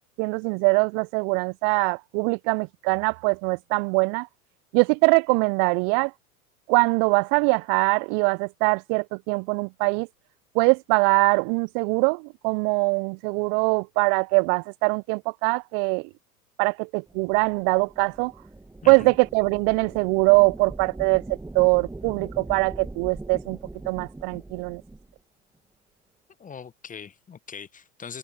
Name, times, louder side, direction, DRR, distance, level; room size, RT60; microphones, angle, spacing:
voice 1, 0.2-4.3 4.7-6.1 6.7-10.1 10.5-16.1 16.6-18.3 18.9-21.2 21.5-23.6 23.9-24.8, right 40 dB or more, 40° right, 0.7 m, -22 dB
sound 1, 17.1-25.1, right 2 dB, 5° right, 2.0 m, -41 dB
voice 2, 18.8-19.1 26.4-28.2, left 6 dB, 15° left, 1.2 m, -41 dB
open air
figure-of-eight pair, 85°, 45 cm